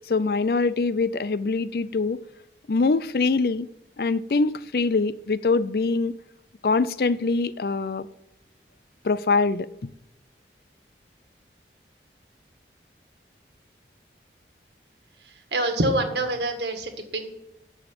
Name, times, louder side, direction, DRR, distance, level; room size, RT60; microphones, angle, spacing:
voice 1, 0.1-2.2 2.7-3.7 4.0-6.1 6.6-8.1 9.0-9.9, left 3 dB, 55° left, 0.4 m, -23 dB
voice 2, 15.5-17.3, right 1 dB, 75° right, 1.8 m, -26 dB
9.8 x 7.0 x 8.9 m
head